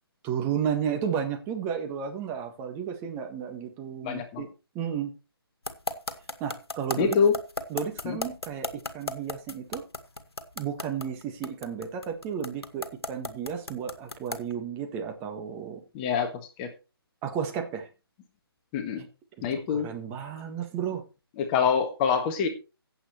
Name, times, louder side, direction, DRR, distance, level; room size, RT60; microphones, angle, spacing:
voice 1, 0.2-4.5 4.7-5.1 6.4-7.2 7.7-8.7 8.9-9.8 10.6-15.8 17.2-17.9 19.7-21.0, right 8 dB, 15° right, 1.6 m, -32 dB
voice 2, 4.0-4.4 7.0-7.3 8.0-8.2 15.9-16.3 16.6-16.7 18.7-19.0 19.4-19.9 21.4-22.5, left 6 dB, 20° left, 1.5 m, -25 dB
sound 1, 5.6-14.5, left 2 dB, 75° left, 1.8 m, -34 dB
16.5 x 7.9 x 3.2 m
figure-of-eight pair, 145°, 13 cm